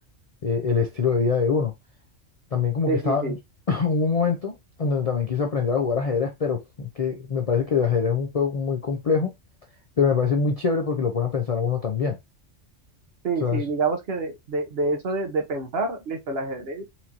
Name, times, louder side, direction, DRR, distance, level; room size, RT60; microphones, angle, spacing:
voice 1, 0.4-1.7 2.5-3.4 3.7-9.3 10.0-12.2 13.4-13.6, left 5 dB, 50° left, 0.4 m, -24 dB
voice 2, 2.9-3.4 13.2-16.9, right 3 dB, 60° right, 1.0 m, -27 dB
4.3 x 2.6 x 2.8 m
omnidirectional pair, 1.3 m